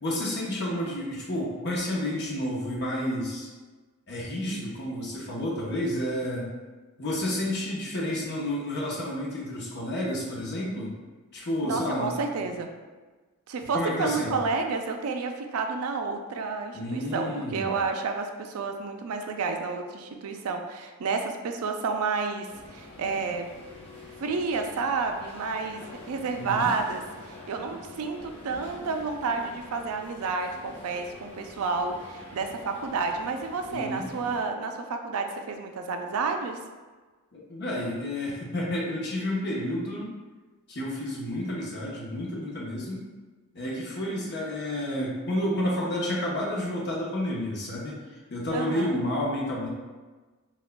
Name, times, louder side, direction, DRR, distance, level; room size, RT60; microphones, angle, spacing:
voice 1, 0.0-3.5 4.1-6.5 7.0-10.9 11.3-12.5 13.7-14.4 16.7-17.7 26.3-26.7 33.7-34.1 37.3-40.1 40.7-43.0 43.5-48.0 48.3-49.7, left 1 dB, 50° left, -4 dB, 0.8 m, -30 dB
voice 2, 11.6-12.7 13.5-23.5 24.2-25.8 26.1-36.6 48.5-49.0, right 4 dB, 75° right, 5 dB, 0.4 m, -30 dB
sound 1, 22.5-34.4, left 2 dB, 25° left, 0.9 m, -46 dB
5.8 x 2.3 x 2.2 m, 1.3 s
head